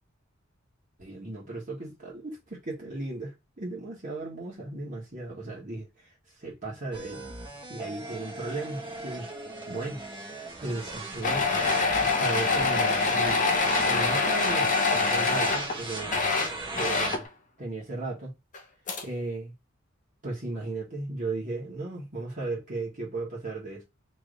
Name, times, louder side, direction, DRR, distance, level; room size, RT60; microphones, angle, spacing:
voice 1, 1.0-5.9 6.4-7.3 7.7-9.3 9.7-11.5 12.0-16.2 16.8-17.2 17.6-18.3 19.0-19.5 20.2-23.8, right 2 dB, 40° right, 1.6 m, -36 dB
sound 1, 6.9-17.2, right 2 dB, 25° right, 1.3 m, -37 dB
sound 2, 11.2-15.8 16.0-17.3 18.5-18.6 18.9-19.0, left 4 dB, 40° left, 0.7 m, -25 dB
3.3 x 3.1 x 3.8 m
head